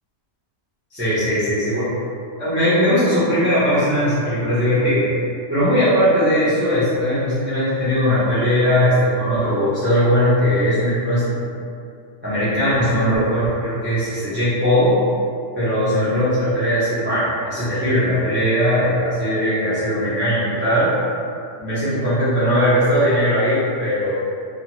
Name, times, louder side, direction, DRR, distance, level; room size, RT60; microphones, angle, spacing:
voice 1, 0.9-1.9 2.4-5.1 5.5-11.4 12.2-15.0 15.5-20.9 21.6-24.1, equal, 15° right, -12 dB, 0.4 m, -19 dB
2.4 x 2.3 x 3.0 m, 2.4 s
omnidirectional pair, 1.6 m